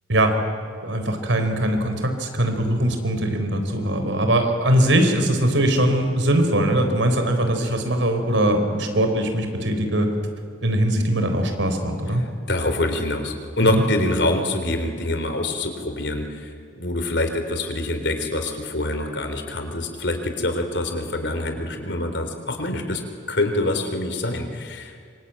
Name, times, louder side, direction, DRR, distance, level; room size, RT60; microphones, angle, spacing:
voice 1, 0.8-10.1 10.6-12.2 13.7-13.8, right 1 dB, 85° right, 6 dB, 4.2 m, -21 dB
voice 2, 12.2-23.0 23.3-25.0, left 1 dB, 65° left, 6 dB, 3.8 m, -25 dB
26.0 x 25.0 x 9.1 m, 2.3 s
head